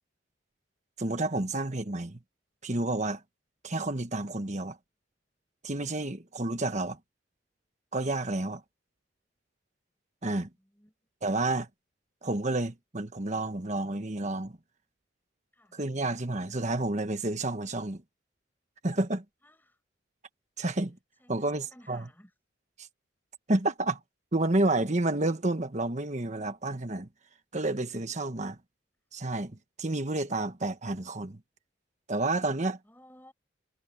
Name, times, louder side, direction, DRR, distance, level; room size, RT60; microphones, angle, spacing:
voice 1, 1.0-2.2 2.6-3.2 3.6-4.8 5.6-7.0 7.9-8.6 10.2-10.5 11.2-11.7 12.2-14.6 15.7-18.0 18.8-19.2 20.6-21.0 21.3-22.1 22.8-22.9 23.5-24.0 24.3-27.1 27.5-28.6 29.1-31.4 32.1-32.8, right 2 dB, 40° right, 1.4 m, -30 dB
voice 2, 10.6-10.9 15.5-15.8 19.4-19.8 21.2-22.3 32.8-33.3, left 1 dB, 10° left, 5.6 m, -56 dB
head